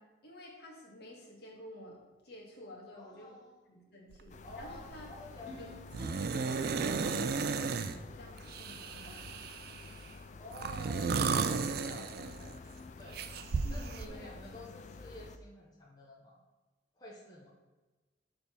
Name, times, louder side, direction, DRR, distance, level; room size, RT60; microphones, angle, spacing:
voice 1, 0.0-3.4 3.7-5.1 5.6-5.7 6.0-9.3 11.6-12.0 13.6-14.3, left 1 dB, 65° left, -2 dB, 1.6 m, -51 dB
voice 2, 2.9-3.6 4.4-5.8 8.9-9.2 10.4-13.2 13.7-16.4 17.0-17.5, left 2 dB, 25° left, -4 dB, 0.9 m, -51 dB
sound 1, 4.1-4.3 4.6-5.0 5.9-8.0 8.5-9.9 10.5-12.6 13.1-14.1, right 5 dB, 60° right, 0.4 m, -34 dB
sound 2, 4.3-15.4, left 3 dB, 40° left, 0.4 m, -50 dB
sound 3, 5.5-8.8 9.2-9.3, right 3 dB, 10° right, 1.8 m, -49 dB
6.8 x 3.5 x 5.6 m, 1.2 s
head